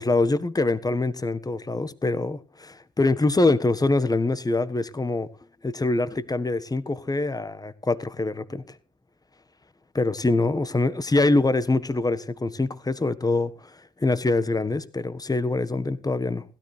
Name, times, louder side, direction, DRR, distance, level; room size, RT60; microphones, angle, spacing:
voice 1, 0.0-5.3 5.6-8.6 9.9-13.5 14.0-16.4, left 2 dB, 25° left, 1.5 m, -24 dB
16.5 x 13.0 x 3.4 m
supercardioid pair, 45°, 16 cm